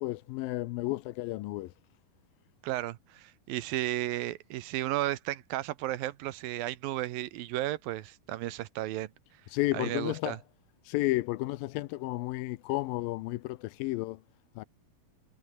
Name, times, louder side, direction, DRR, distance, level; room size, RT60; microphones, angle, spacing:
voice 1, 0.0-1.7 9.5-10.4 10.9-14.2 14.6-14.7, left 18 dB, 85° left, 2.5 m, -32 dB
voice 2, 2.6-9.1 9.7-10.4, right 15 dB, 80° right, 2.8 m, -34 dB
omnidirectional pair, 4.1 m